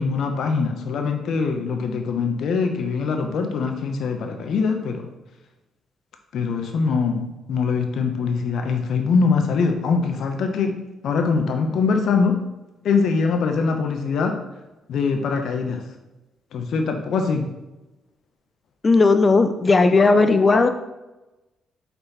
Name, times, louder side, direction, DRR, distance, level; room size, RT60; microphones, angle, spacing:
voice 1, 0.0-5.1 6.3-10.7 11.0-12.4 12.8-14.3 14.9-15.8 16.5-17.5, left 5 dB, 70° left, 5 dB, 0.9 m, -23 dB
voice 2, 18.8-20.7, left 3 dB, 30° left, 9 dB, 0.5 m, -16 dB
5.5 x 4.4 x 4.2 m, 1.0 s
cardioid pair, 90°, 0 cm